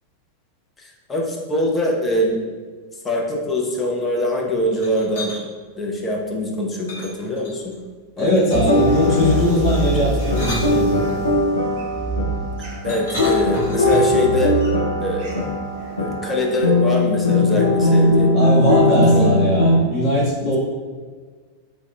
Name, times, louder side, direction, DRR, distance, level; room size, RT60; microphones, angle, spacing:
voice 1, 0.8-2.4 3.0-5.3 5.8-7.7 8.2-10.5 12.8-14.5 15.0-15.5 16.0-18.4 18.9-19.4, left 1 dB, 15° left, -1 dB, 0.5 m, -24 dB
sound 1, 4.7-5.4 6.9-7.8 8.5-8.9 10.0-11.4 12.9-14.2, left 1 dB, 60° left, 0.9 m, -31 dB
voice 2, 8.2-11.0 17.2-17.6 18.3-20.6, left 1 dB, 35° left, -9 dB, 1.4 m, -20 dB
sound 2, 8.5-16.2, right 4 dB, 45° right, 0.6 m, -28 dB
sound 3, 8.7-19.8, left 1 dB, 80° left, 0.3 m, -20 dB
3.4 x 2.1 x 2.3 m, 1.5 s
figure-of-eight pair, 90°, 0 cm